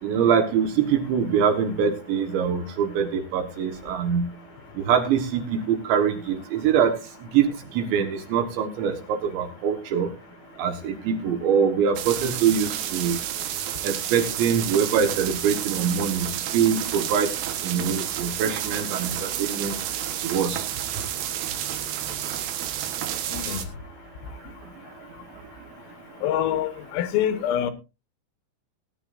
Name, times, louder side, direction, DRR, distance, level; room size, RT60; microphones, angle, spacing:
voice 1, 0.0-4.3 4.8-7.0 7.3-10.1 10.6-13.2 13.8-17.3 17.6-19.7 20.2-20.7, right 7 dB, 70° right, 3.6 m, -24 dB
sound 1, 12.0-23.6, right 11 dB, 85° right, 4.1 m, -30 dB
voice 2, 26.2-27.7, left 10 dB, 90° left, 3.8 m, -25 dB
19.0 x 11.0 x 2.6 m
omnidirectional pair, 5.8 m